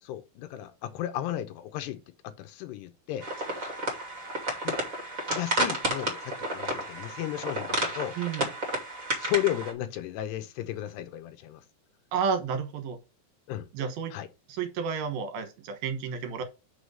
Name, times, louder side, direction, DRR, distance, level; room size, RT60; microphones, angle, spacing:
voice 1, 0.0-3.3 4.6-4.8 5.3-8.2 9.2-11.6 13.5-13.7 14.1-14.3, left 13 dB, 80° left, 2.8 m, -34 dB
sound 1, 3.2-9.7, right 1 dB, 25° right, 1.7 m, -31 dB
voice 2, 8.2-8.5 12.1-13.0 13.7-14.2 14.5-16.4, right 6 dB, 65° right, 2.7 m, -31 dB
6.3 x 4.9 x 6.4 m
omnidirectional pair, 5.3 m